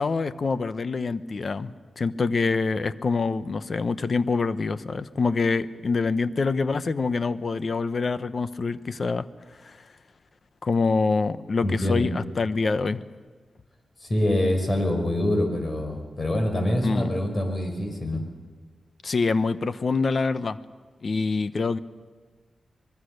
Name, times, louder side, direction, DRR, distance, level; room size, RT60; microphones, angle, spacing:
voice 1, 0.0-9.2 9.6-9.7 10.6-13.0 16.8-17.1 19.0-20.6 21.0-21.8, left 4 dB, 50° left, 13 dB, 0.9 m, -25 dB
voice 2, 11.6-12.1 14.0-18.2, left 1 dB, 35° left, 4 dB, 5.5 m, -25 dB
24.5 x 22.0 x 6.7 m, 1.4 s
cardioid pair, 75°, 0 cm